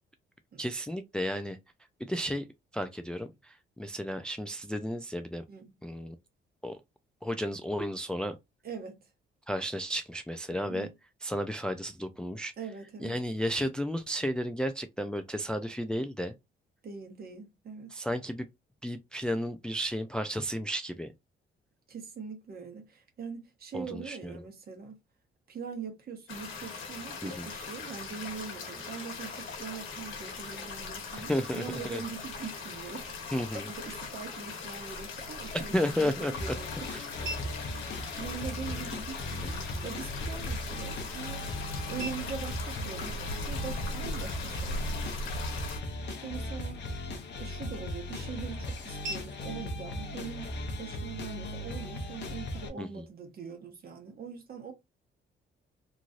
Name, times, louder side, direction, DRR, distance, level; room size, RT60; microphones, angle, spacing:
voice 1, 0.6-1.6 2.0-2.4 2.7-5.4 5.8-6.1 6.6-6.8 7.2-8.3 9.5-10.9 11.2-12.5 13.0-16.3 17.9-18.5 18.8-21.1 23.7-24.3 27.2-27.5 31.3-32.0 33.3-33.7 35.7-36.3 36.9-37.0 52.8-52.9, equal, 5° left, 0.3 m, -33 dB
voice 2, 8.6-9.0 10.5-10.9 12.6-13.2 16.8-17.9 21.9-25.0 25.5-33.1 33.5-36.9 37.2-39.6 39.8-41.5 41.9-45.5 46.1-46.8 47.4-54.7, right 6 dB, 50° right, 1.1 m, -42 dB
sound 1, 26.3-45.8, left 3 dB, 80° left, 1.2 m, -39 dB
Scanner beeping sound, 35.5-51.5, right 1 dB, 70° right, 1.4 m, -50 dB
sound 2, 36.3-52.7, left 1 dB, 60° left, 0.8 m, -38 dB
3.0 x 2.5 x 2.5 m
cardioid pair, 90°, 20 cm